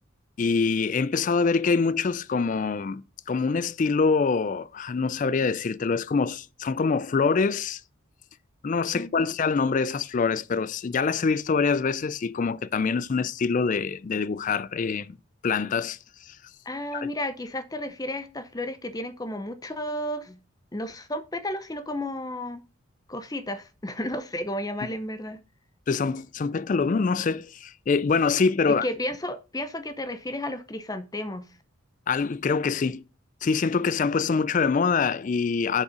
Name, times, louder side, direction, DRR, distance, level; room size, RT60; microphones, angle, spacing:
voice 1, 0.4-3.0 3.3-7.8 8.6-15.2 15.4-16.4 16.9-17.1 25.9-28.9 32.1-33.0 33.4-35.8, left 5 dB, 35° left, 0.3 m, -25 dB
voice 2, 8.9-9.3 16.7-20.4 20.7-22.6 23.1-25.4 28.7-31.5, left 1 dB, 15° left, 0.7 m, -33 dB
6.6 x 5.5 x 4.9 m
head